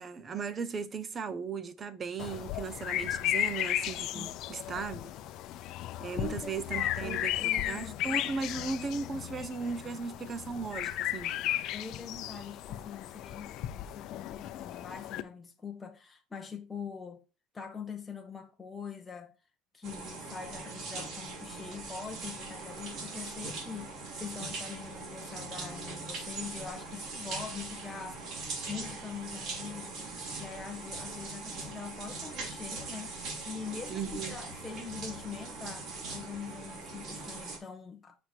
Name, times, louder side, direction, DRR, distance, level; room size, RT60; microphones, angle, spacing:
voice 1, 0.0-5.0 6.0-11.3 33.9-34.4, right 5 dB, 25° right, 0.8 m, -37 dB
sound 1, 2.2-15.2, left 13 dB, 50° left, 0.6 m, -35 dB
voice 2, 6.2-8.0 11.7-17.2 17.5-19.3 19.7-33.2 33.4-38.2, left 6 dB, 15° left, 1.0 m, -43 dB
sound 2, 19.8-37.6, right 3 dB, 50° right, 3.5 m, -41 dB
6.5 x 4.8 x 4.4 m
cardioid pair, 155°, 0 cm